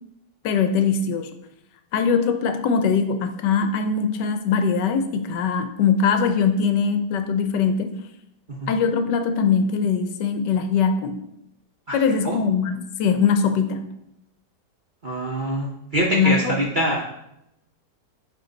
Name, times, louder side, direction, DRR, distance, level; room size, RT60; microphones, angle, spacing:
voice 1, 0.4-1.3 1.9-7.9 8.7-11.2 11.9-13.8 16.1-16.6, left 6 dB, 85° left, 8 dB, 1.3 m, -21 dB
voice 2, 15.0-17.0, equal, 45° right, -4 dB, 0.6 m, -24 dB
9.0 x 3.1 x 3.9 m, 0.82 s
omnidirectional pair, 1.9 m